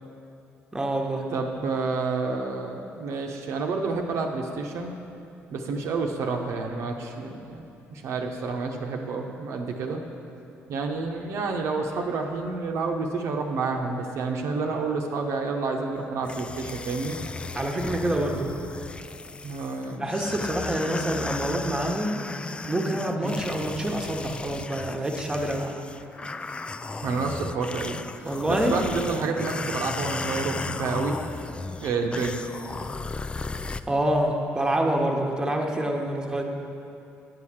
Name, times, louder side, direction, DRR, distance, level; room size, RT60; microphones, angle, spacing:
voice 1, 0.7-1.3 17.5-18.5 20.0-22.2 22.7-25.8 28.2-28.8 33.5-36.4, right 1 dB, 15° right, 1 dB, 1.1 m, -27 dB
voice 2, 1.3-4.9 5.5-7.6 7.9-10.0 10.7-17.2 19.4-20.0 23.2-23.4 27.0-28.0 28.5-31.2 31.8-32.5, right 4 dB, 70° right, 1 dB, 0.8 m, -29 dB
sound 1, 16.2-33.8, left 3 dB, 20° left, 0.3 m, -35 dB
9.6 x 4.9 x 7.3 m, 2.7 s
cardioid pair, 90°, 5 cm